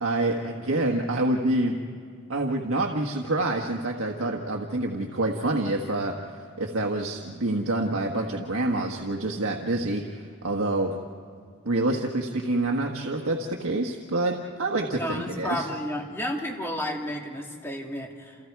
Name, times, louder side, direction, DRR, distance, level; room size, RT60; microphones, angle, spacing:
voice 1, 0.0-1.8 2.3-11.0 11.6-15.7, right 2 dB, 70° right, 1 dB, 1.5 m, -27 dB
voice 2, 15.0-18.4, equal, 10° left, 0 dB, 2.7 m, -32 dB
29.5 x 29.0 x 4.7 m, 2.3 s
head